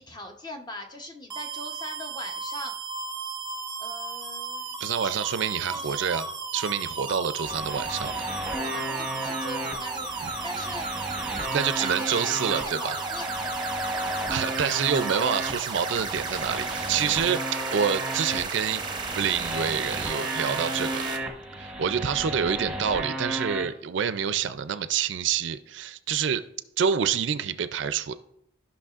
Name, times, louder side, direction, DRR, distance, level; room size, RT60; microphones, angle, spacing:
voice 1, 0.0-2.7 3.8-4.8 5.0-5.2 5.7-6.2 7.0-7.1 8.5-10.1 10.4-11.2 11.6-13.7, left 1 dB, 20° left, 0.8 m, -41 dB
sound 1, 1.3-21.2, right 4 dB, 25° right, 0.7 m, -34 dB
voice 2, 4.8-8.2 10.2-10.3 11.5-13.0 13.8-13.9 14.3-17.4 17.7-18.8 19.2-21.0 21.6-26.4 26.8-28.1, right 7 dB, 65° right, 0.4 m, -27 dB
sound 2, 7.4-23.7, right 1 dB, 5° right, 1.0 m, -34 dB
14.5 x 5.7 x 2.4 m
head